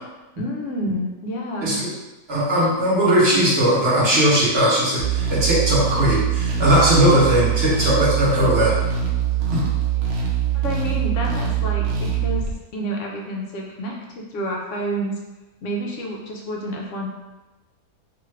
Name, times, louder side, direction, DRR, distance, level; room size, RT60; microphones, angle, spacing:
voice 1, 0.4-1.8 10.0-10.3 10.5-12.5 12.7-15.2 15.6-17.1, right 1 dB, 65° left, -1 dB, 0.8 m, -29 dB
voice 2, 1.6-1.9 2.3-8.7 9.5-9.6, equal, 45° right, -8 dB, 1.0 m, -18 dB
sound 1, 5.0-12.5, right 9 dB, 80° right, 0.5 m, -23 dB
2.8 x 2.4 x 3.1 m, 1.1 s
omnidirectional pair, 1.7 m